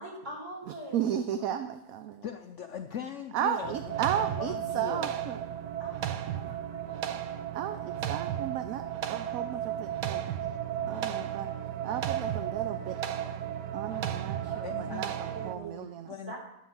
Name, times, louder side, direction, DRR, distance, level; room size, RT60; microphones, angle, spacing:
voice 1, 0.0-1.1 1.4-1.5 5.8-7.3 10.9-11.1 13.9-14.7 15.0-15.8 16.3-16.4, right 2 dB, 45° right, -4 dB, 4.3 m, -44 dB
voice 2, 0.9-2.0 3.3-5.4 7.5-8.8 9.1-10.2 10.9-11.5 11.8-13.0 13.7-16.1, right 9 dB, 65° right, 9 dB, 1.0 m, -34 dB
voice 3, 2.2-5.3 10.4-10.9 13.2-13.4 14.6-16.3, left 8 dB, 65° left, 6 dB, 0.7 m, -41 dB
sound 1, 3.6-15.6, right 10 dB, 90° right, 1.3 m, -34 dB
11.5 x 5.8 x 7.2 m, 0.85 s
omnidirectional pair, 1.7 m